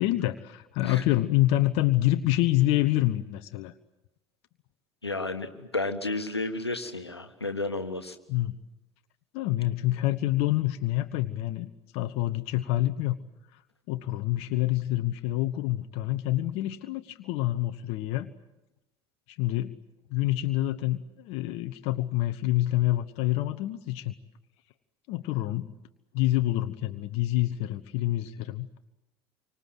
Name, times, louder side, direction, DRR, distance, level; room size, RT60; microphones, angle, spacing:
voice 1, 0.0-3.7 8.3-8.6 9.3-13.2 13.5-13.6 13.9-18.3 19.3-19.8 20.1-24.1 25.1-25.7 26.1-28.7, left 15 dB, 55° left, 9 dB, 1.1 m, -27 dB
voice 2, 5.0-8.2, left 2 dB, 85° left, 8 dB, 1.5 m, -32 dB
28.0 x 25.0 x 7.9 m, 0.95 s
figure-of-eight pair, 65°, 13 cm